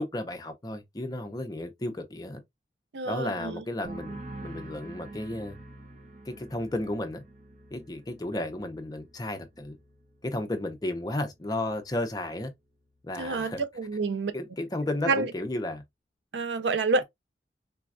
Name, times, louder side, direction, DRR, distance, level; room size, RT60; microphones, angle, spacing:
voice 1, 0.0-2.4 3.0-5.6 6.3-7.2 7.7-9.8 10.2-12.5 13.0-13.6 14.3-15.8, left 1 dB, 20° left, 0.5 m, -33 dB
voice 2, 2.9-3.6 13.2-14.3 15.1-15.3 16.3-17.0, right 3 dB, 80° right, 0.5 m, -28 dB
sound 1, 3.8-11.3 11.6-12.1, right 2 dB, 45° right, 0.7 m, -46 dB
4.0 x 2.3 x 2.4 m
head